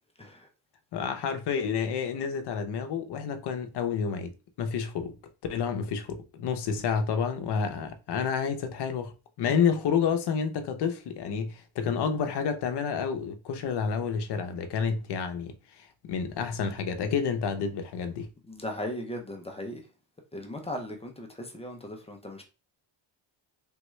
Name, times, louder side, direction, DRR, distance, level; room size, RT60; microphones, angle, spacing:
voice 1, 0.2-0.5 18.5-19.8 20.3-22.4, left 1 dB, 15° left, 0.3 m, -37 dB
voice 2, 0.9-4.3 4.6-5.2 5.5-18.3, left 6 dB, 55° left, 0.6 m, -29 dB
3.5 x 2.2 x 3.0 m
cardioid pair, 140°, 48 cm